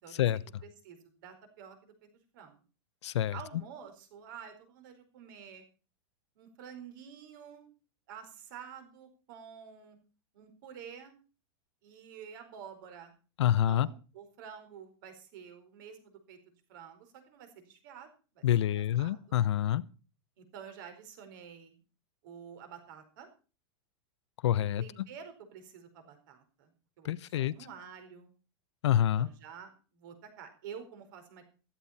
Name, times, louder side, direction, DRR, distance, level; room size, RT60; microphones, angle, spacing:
voice 1, 0.6-1.9 2.3-2.6 3.3-5.6 6.4-7.7 8.1-10.0 10.3-11.2 11.8-13.1 13.7-18.1 18.3-19.4 20.4-21.8 22.2-23.3 24.8-27.1 27.3-28.3 29.2-31.4, right 7 dB, 45° right, 4.8 m, -49 dB
voice 2, 3.0-3.3 13.4-13.9 18.4-19.8 24.4-24.8 27.0-27.5 28.8-29.3, left 11 dB, 80° left, 1.1 m, -27 dB
16.0 x 14.5 x 4.4 m
supercardioid pair, 180°, 14 cm